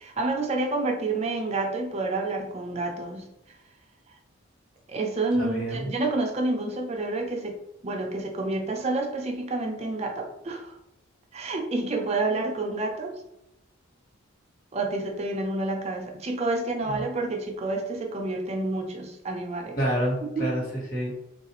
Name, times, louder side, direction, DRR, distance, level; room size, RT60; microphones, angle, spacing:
voice 1, 0.0-3.3 4.9-7.6 7.8-10.7 11.3-13.2 14.7-19.8 20.3-20.5, right 2 dB, 30° right, 3 dB, 0.4 m, -29 dB
voice 2, 5.4-5.9 16.8-17.0 19.8-21.2, equal, 40° left, -5 dB, 1.1 m, -28 dB
3.5 x 2.3 x 2.9 m, 0.84 s
head